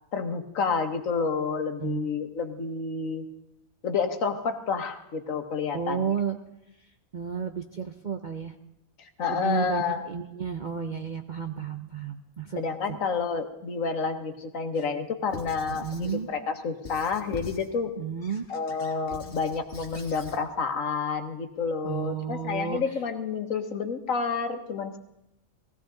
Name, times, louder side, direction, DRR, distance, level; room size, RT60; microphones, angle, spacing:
voice 1, 0.1-3.2 3.8-6.1 9.0-10.1 12.6-17.9 18.5-25.0, left 5 dB, 65° left, 7 dB, 1.5 m, -29 dB
voice 2, 5.7-6.4 7.1-8.5 9.3-12.6 12.9-13.0 15.7-16.3 18.0-18.4 21.8-22.8, right 7 dB, 45° right, 7 dB, 0.6 m, -32 dB
Squeak / Writing, 15.3-16.2 16.8-17.7 18.2-20.4, left 4 dB, 40° left, 1.7 m, -43 dB
19.5 x 16.0 x 3.8 m, 0.90 s
omnidirectional pair, 1.5 m